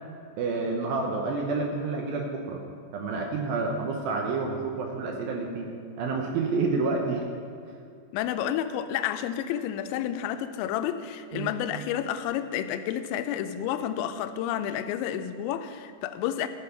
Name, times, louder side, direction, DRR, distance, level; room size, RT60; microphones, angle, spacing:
voice 1, 0.4-2.6 2.9-5.7 6.0-7.2 11.3-11.5, right 3 dB, 80° right, 1 dB, 2.1 m, -29 dB
voice 2, 8.1-16.5, left 10 dB, 85° left, 9 dB, 2.8 m, -30 dB
14.0 x 6.3 x 5.7 m, 2.4 s
omnidirectional pair, 5.3 m